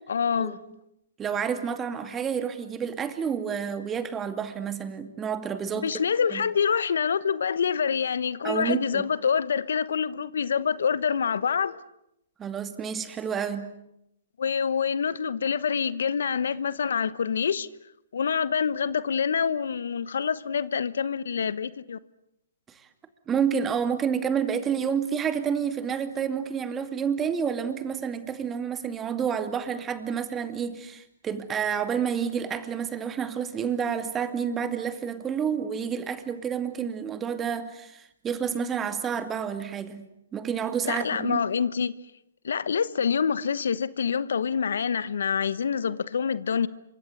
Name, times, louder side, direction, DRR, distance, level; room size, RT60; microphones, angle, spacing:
voice 1, 0.1-0.6 5.8-11.8 14.4-17.7 18.1-22.0 40.8-41.9 42.4-46.7, left 6 dB, 70° left, 1.1 m, -26 dB
voice 2, 1.2-5.9 6.3-6.4 8.4-9.0 12.4-13.7 23.3-40.0 40.3-41.4, right 7 dB, 15° right, 2.3 m, -29 dB
28.0 x 24.5 x 8.0 m
hypercardioid pair, 135°, 0 cm